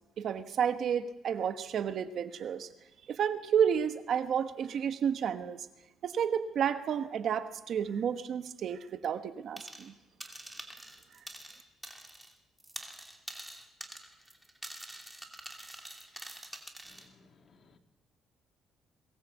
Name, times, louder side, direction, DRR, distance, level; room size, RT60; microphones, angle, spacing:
voice 1, 0.2-2.7 3.1-5.7 6.0-9.9, right 8 dB, 55° right, 10 dB, 1.3 m, -31 dB
sound 1, 9.6-9.9 10.2-12.3 12.6-17.1, right 1 dB, 5° right, 2.7 m, -46 dB
voice 2, 16.8-17.8, left 4 dB, 40° left, 6 dB, 2.1 m, -62 dB
22.5 x 19.0 x 8.3 m, 1.0 s
cardioid pair, 145°, 0 cm